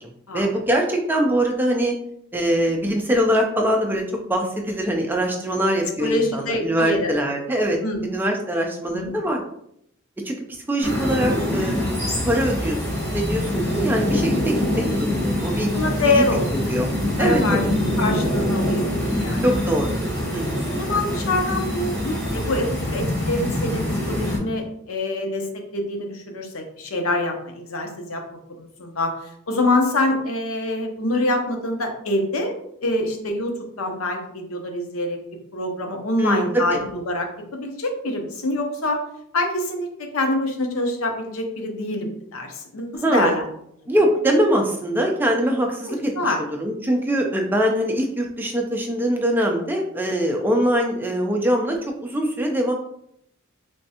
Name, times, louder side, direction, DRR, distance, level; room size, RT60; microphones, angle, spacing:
voice 1, 0.0-1.9 2.3-4.0 4.3-9.4 10.2-10.3 10.7-12.8 13.1-14.6 15.0-15.7 16.1-16.2 16.7-16.9 17.2-17.7 19.4-19.9 20.3-20.8 36.2-36.8 43.0-43.3 43.9-52.7, equal, 10° right, 1 dB, 0.4 m, -23 dB
voice 2, 6.0-7.2 7.8-8.0 8.9-9.3 15.7-16.8 17.2-17.6 18.0-18.9 19.2-19.4 20.6-28.2 28.6-32.5 32.8-35.2 35.5-39.0 39.3-43.5 45.8-46.4, left 2 dB, 75° left, 4 dB, 0.7 m, -25 dB
sound 1, 10.8-24.4, left 1 dB, 15° left, 1.3 m, -24 dB
3.4 x 3.1 x 2.8 m, 0.73 s
head